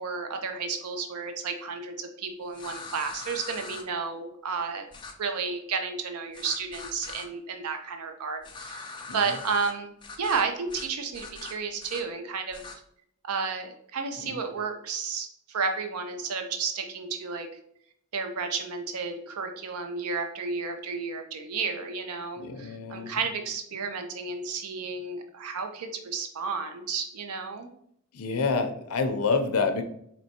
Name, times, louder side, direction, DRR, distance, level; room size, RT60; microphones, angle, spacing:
voice 1, 0.0-4.9 5.2-12.8 13.3-17.5 18.1-27.7, right 5 dB, 85° right, 5 dB, 0.5 m, -32 dB
sound 1, 2.5-3.8 4.9-5.1 6.3-7.3 8.4-9.7 10.0-10.4 10.7-10.9 11.1-12.0 12.5-12.8, left 4 dB, 20° left, 0.3 m, -41 dB
voice 2, 22.4-23.2 28.1-29.8, left 4 dB, 80° left, 7 dB, 0.5 m, -27 dB
4.4 x 3.0 x 2.8 m, 0.70 s
head